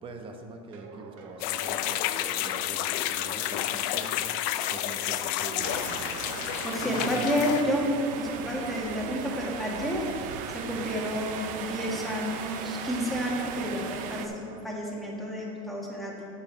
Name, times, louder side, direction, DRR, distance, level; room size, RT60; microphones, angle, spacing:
voice 1, 0.0-4.3 4.7-6.1 6.8-7.5, right 3 dB, 30° right, 4 dB, 1.0 m, -42 dB
sound 1, 0.7-14.6, right 4 dB, 80° right, 1.0 m, -47 dB
sound 2, 1.4-7.6, left 13 dB, 55° left, 0.4 m, -30 dB
sound 3, 5.6-14.3, right 7 dB, 50° right, 0.6 m, -37 dB
voice 2, 6.4-16.3, equal, ahead, -4 dB, 1.7 m, -30 dB
8.7 x 7.0 x 4.5 m, 2.5 s
supercardioid pair, 120°, 17 cm